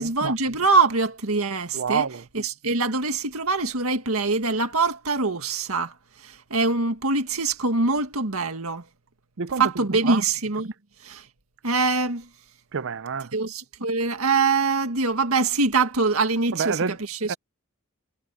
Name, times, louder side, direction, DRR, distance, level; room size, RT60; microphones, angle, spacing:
voice 1, 0.0-2.1 2.3-8.9 9.6-10.7 11.0-11.3 11.6-12.3 13.3-17.4, right 3 dB, 80° right, 1.9 m, -24 dB
voice 2, 1.7-2.2 9.4-9.6 10.1-10.2 12.7-13.3 16.6-16.9 17.3-17.4, right 6 dB, 60° right, 0.6 m, -27 dB
head